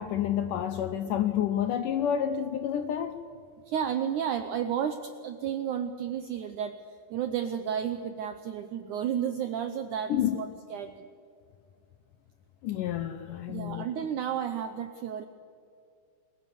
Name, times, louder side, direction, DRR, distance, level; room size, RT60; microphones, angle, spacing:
voice 1, 0.0-3.2 10.1-10.4 12.6-13.8, left 9 dB, 75° left, 2.0 m, -29 dB
voice 2, 3.7-6.8 7.1-11.1 13.5-15.3, right 9 dB, 80° right, 1.8 m, -32 dB
28.5 x 21.5 x 7.2 m
omnidirectional pair, 4.7 m